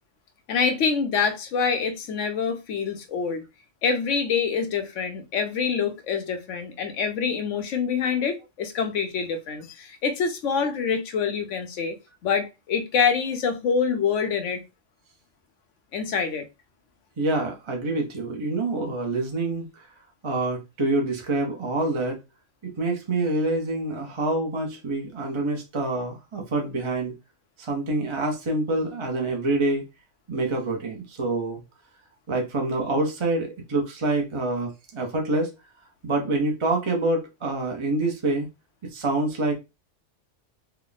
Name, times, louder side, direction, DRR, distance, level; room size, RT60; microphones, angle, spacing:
voice 1, 0.5-3.4 3.8-12.0 12.2-14.6 15.9-16.5, left 6 dB, 80° left, 1.1 m, -26 dB
voice 2, 17.2-19.9 20.2-22.2 22.6-27.1 27.6-29.8 30.3-31.6 32.3-35.5 36.0-38.5 38.8-39.5, right 2 dB, 30° right, 0.7 m, -26 dB
3.4 x 2.2 x 3.9 m
omnidirectional pair, 1.3 m